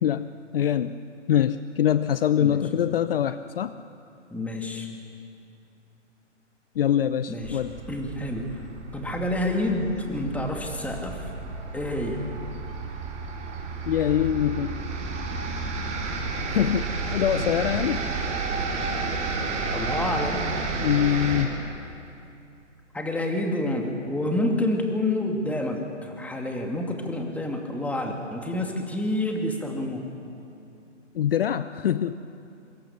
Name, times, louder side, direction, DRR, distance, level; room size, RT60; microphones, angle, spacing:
voice 1, 0.0-1.0 1.3-3.8 6.8-7.7 13.9-14.7 16.5-18.0 20.8-21.6 31.1-32.2, left 10 dB, 50° left, 13 dB, 0.8 m, -24 dB
voice 2, 4.3-4.9 7.3-7.6 7.9-8.6 8.9-11.3 11.7-12.2 19.7-20.5 22.9-30.1, left 1 dB, 5° left, 2 dB, 2.3 m, -28 dB
sound 1, 7.4-21.4, right 3 dB, 20° right, 3.8 m, -31 dB
26.0 x 25.0 x 7.1 m, 2.6 s
figure-of-eight pair, 130°, 37 cm